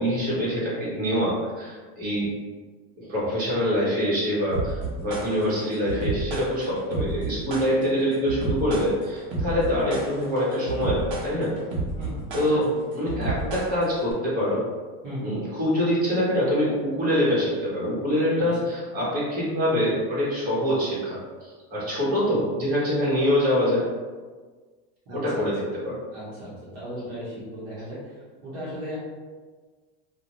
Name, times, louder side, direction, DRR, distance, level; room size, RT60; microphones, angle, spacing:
voice 1, 0.0-2.3 3.0-11.5 12.3-12.7 12.9-14.6 15.2-23.8 25.1-25.6 25.8-26.0, equal, 25° right, -8 dB, 1.2 m, -25 dB
sound 1, 4.5-14.1, right 3 dB, 75° right, 0.9 m, -31 dB
voice 2, 12.0-12.9 13.3-13.4 15.0-15.4 18.4-18.5 25.1-25.4 26.1-29.0, equal, 45° right, -9 dB, 1.0 m, -37 dB
2.4 x 2.3 x 3.0 m, 1.4 s
supercardioid pair, 140°, 31 cm